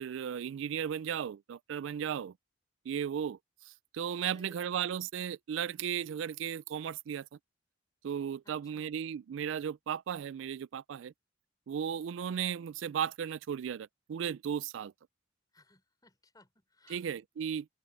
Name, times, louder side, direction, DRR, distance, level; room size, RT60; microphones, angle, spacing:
voice 1, 0.0-2.3 2.9-3.4 3.7-7.3 8.0-11.1 11.7-14.9 16.9-17.7, right 8 dB, 75° right, 0.3 m, -35 dB
voice 2, 4.3-4.9 8.4-8.9 15.5-17.0, left 2 dB, 20° left, 5.6 m, -61 dB
open air
head